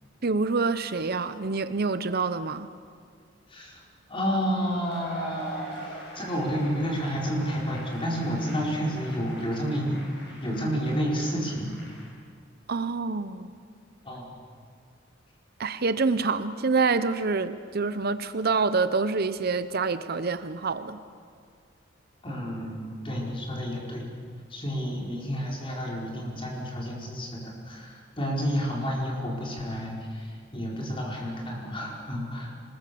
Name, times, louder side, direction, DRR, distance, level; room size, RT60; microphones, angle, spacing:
voice 1, 0.2-2.7 12.7-13.5 15.6-21.0, right 4 dB, 55° right, 12 dB, 0.8 m, -26 dB
voice 2, 3.5-3.8 4.1-10.0 10.4-11.7 14.0-14.4 22.2-24.1 24.5-32.5, equal, 30° left, -2 dB, 4.8 m, -30 dB
Cheering / Applause / Crowd, 4.4-12.1, equal, 60° left, 7.5 m, -44 dB
25.5 x 20.5 x 7.0 m, 2.1 s
head